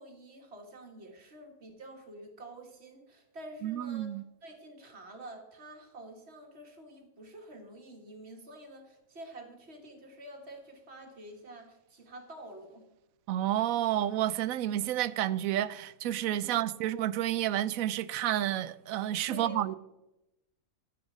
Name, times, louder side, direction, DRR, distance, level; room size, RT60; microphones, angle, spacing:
voice 1, 0.0-12.9 16.4-16.7 19.3-19.8, right 1 dB, 50° right, 2.0 m, -48 dB
voice 2, 3.6-4.2 13.3-19.7, right 12 dB, 80° right, 1.0 m, -30 dB
13.5 x 6.3 x 6.2 m
omnidirectional pair, 1.5 m